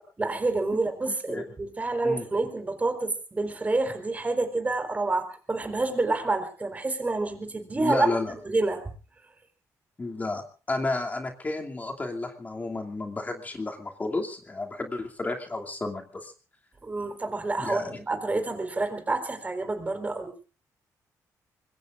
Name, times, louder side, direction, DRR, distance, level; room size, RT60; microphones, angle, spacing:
voice 1, 0.2-8.1 8.5-8.8 16.8-20.3, right 3 dB, 25° right, 7 dB, 4.3 m, -28 dB
voice 2, 1.1-1.4 2.0-2.3 7.7-8.3 10.0-16.3 17.6-18.0, left 2 dB, 25° left, 2 dB, 2.7 m, -32 dB
25.5 x 22.0 x 2.6 m, 0.36 s
cardioid pair, 95°, 6 cm